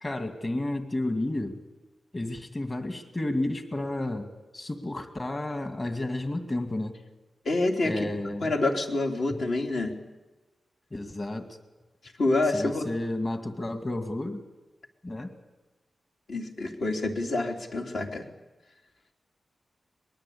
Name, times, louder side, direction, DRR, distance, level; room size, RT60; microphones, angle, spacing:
voice 1, 0.0-1.6 2.1-4.3 4.5-6.9 7.8-8.5 10.9-11.5 12.5-14.4 15.0-15.3, left 1 dB, 30° left, 7 dB, 2.1 m, -31 dB
voice 2, 7.4-8.1 8.4-9.9 12.2-12.8 16.3-18.2, left 2 dB, 65° left, 2 dB, 3.2 m, -27 dB
23.5 x 20.5 x 8.6 m, 1.2 s
wide cardioid pair, 110°, 0 cm